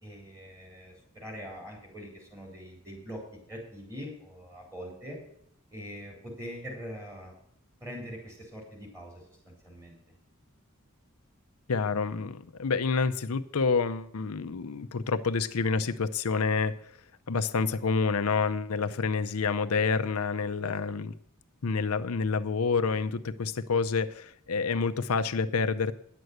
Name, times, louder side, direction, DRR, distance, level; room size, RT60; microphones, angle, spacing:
voice 1, 0.0-3.2 3.5-5.2 5.7-7.3 7.8-10.0, equal, 15° right, 0 dB, 4.2 m, -43 dB
voice 2, 11.7-16.7 17.3-21.1 21.6-25.9, left 4 dB, 90° left, 9 dB, 0.6 m, -28 dB
10.0 x 7.9 x 8.0 m, 0.71 s
head